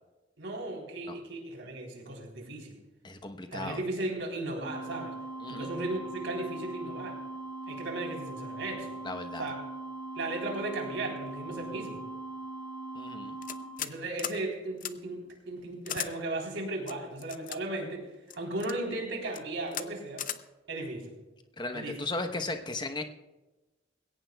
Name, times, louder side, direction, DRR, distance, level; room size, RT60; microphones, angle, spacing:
voice 1, 0.4-2.8 3.5-5.2 5.5-7.2 7.7-8.9 9.4-9.6 10.2-12.0 13.8-18.1 18.4-20.2 20.7-21.1 21.7-22.0 22.3-22.4, right 2 dB, 75° right, 0 dB, 3.6 m, -36 dB
voice 2, 3.0-3.8 5.4-5.7 9.0-9.5 12.9-13.4 21.6-23.1, left 2 dB, 25° left, 6 dB, 0.9 m, -36 dB
sound 1, 4.6-13.6, right 2 dB, 75° left, 4.9 m, -40 dB
sound 2, 13.4-13.9 14.2-14.4 14.8-14.9 15.8-16.1 16.9-17.6 18.3-18.8 19.3-19.4 19.7-19.9 20.2-20.4, left 10 dB, 45° left, 0.6 m, -36 dB
21.0 x 17.0 x 2.3 m, 1.1 s
head